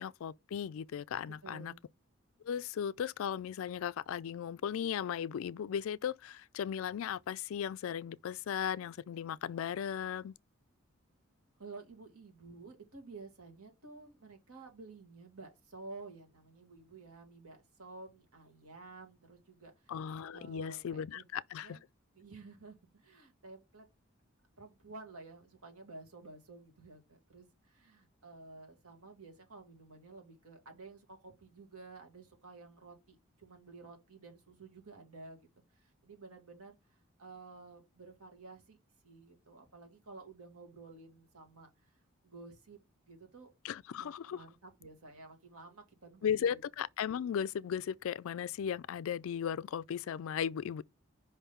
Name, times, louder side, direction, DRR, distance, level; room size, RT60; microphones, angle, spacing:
voice 1, 0.0-1.7 2.4-10.4 19.9-21.8 43.6-44.4 46.2-50.8, left 8 dB, 70° left, 0.3 m, -36 dB
voice 2, 1.4-1.8 11.6-19.9 20.3-21.2 21.6-21.8 22.2-23.9 24.6-35.5 35.7-38.8 39.0-42.8 43.1-43.5 44.0-46.6, right 3 dB, 85° right, 1.9 m, -52 dB
5.2 x 3.6 x 5.7 m
head